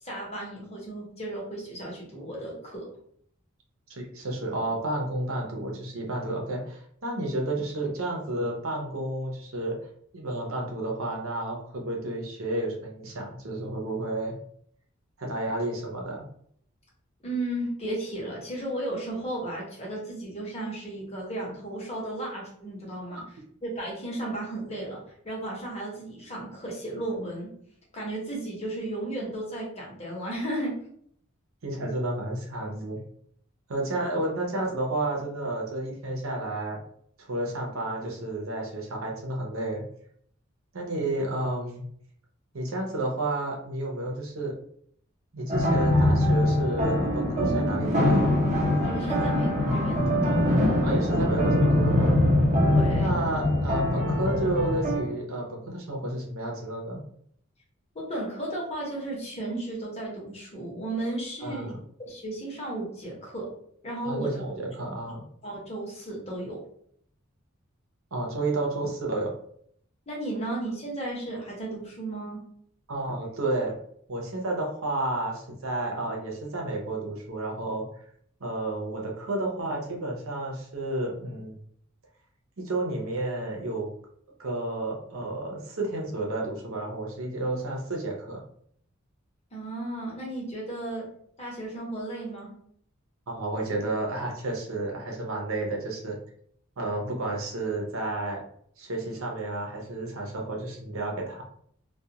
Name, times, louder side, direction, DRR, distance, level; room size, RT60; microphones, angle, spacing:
voice 1, 0.0-2.9 17.2-23.2 23.6-25.0 25.2-27.5 27.9-30.7 48.8-50.4 52.7-53.1 57.9-61.7 62.1-63.5 63.8-64.4 65.4-66.6 70.1-72.4 89.5-91.1 91.4-92.5, right 1 dB, 30° left, -3 dB, 1.0 m, -34 dB
voice 2, 3.9-9.8 10.1-14.3 15.2-16.2 23.2-23.3 31.6-33.0 33.7-36.8 37.2-39.8 40.7-41.8 42.5-44.5 45.3-48.3 50.8-52.2 53.0-57.0 61.4-61.8 64.0-65.2 68.1-69.3 72.9-73.7 74.1-78.0 78.4-81.6 82.6-83.9 84.4-88.4 93.3-96.2 96.8-98.4 98.8-101.4, right 2 dB, 90° right, 0 dB, 0.7 m, -31 dB
sound 1, 45.5-55.0, left 1 dB, 35° right, 0.7 m, -23 dB
2.4 x 2.3 x 2.8 m, 0.65 s
head